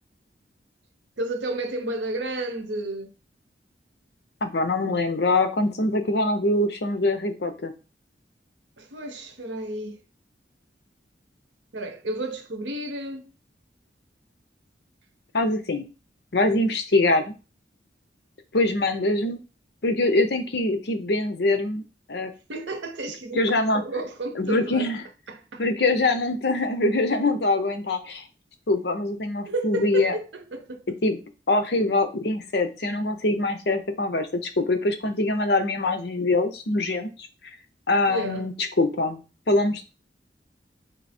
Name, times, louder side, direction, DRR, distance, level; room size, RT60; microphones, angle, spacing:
voice 1, 1.2-3.1 8.8-10.0 11.7-13.3 22.5-24.9 25.3-25.6 29.4-31.0 38.1-38.5, right 1 dB, 85° right, 0.8 m, -32 dB
voice 2, 4.4-7.7 15.3-15.9 16.3-17.3 18.5-19.4 19.8-21.8 22.1-22.3 23.3-23.8 24.4-25.0 25.6-28.2 28.7-30.1 31.0-31.2 31.5-37.1 37.9-39.2 39.5-39.8, left 2 dB, 60° left, 0.7 m, -23 dB
4.6 x 2.7 x 4.3 m
head